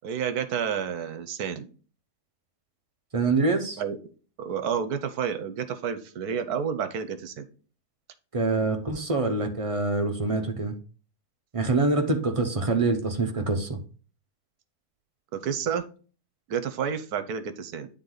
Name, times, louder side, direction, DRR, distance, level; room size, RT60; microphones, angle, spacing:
voice 1, 0.0-1.7 3.8-4.0 4.4-7.5 15.3-15.9 16.5-17.9, right 7 dB, 75° right, 10 dB, 1.2 m, -30 dB
voice 2, 3.1-3.8 8.3-10.8 11.5-13.8, right 3 dB, 30° right, 4 dB, 0.7 m, -25 dB
9.6 x 3.9 x 3.8 m, 0.38 s
omnidirectional pair, 1.7 m